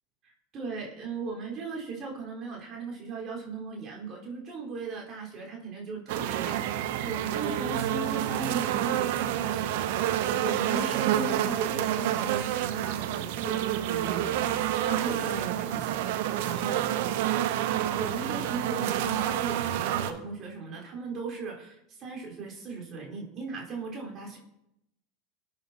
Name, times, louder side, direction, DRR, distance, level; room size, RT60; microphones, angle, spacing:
voice 1, 0.2-10.1 10.4-16.9 18.0-24.4, right 4 dB, 40° right, -2 dB, 4.8 m, -37 dB
sound 1, 6.1-20.1, right 12 dB, 65° right, 0.9 m, -29 dB
21.5 x 9.3 x 3.0 m, 0.84 s
hypercardioid pair, 85°, 0 cm